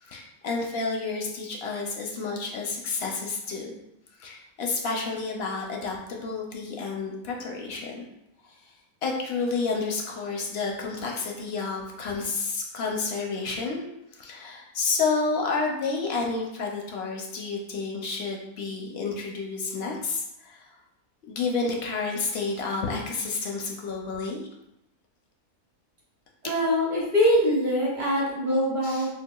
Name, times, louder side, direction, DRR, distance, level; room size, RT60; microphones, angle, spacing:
voice 1, 0.0-3.8 4.2-8.0 9.0-13.8 14.1-20.7 21.3-24.4 28.8-29.0, left 4 dB, 65° left, 0 dB, 0.6 m, -30 dB
voice 2, 26.4-29.1, equal, 40° right, -5 dB, 0.9 m, -23 dB
4.7 x 2.2 x 2.2 m, 0.84 s
omnidirectional pair, 1.5 m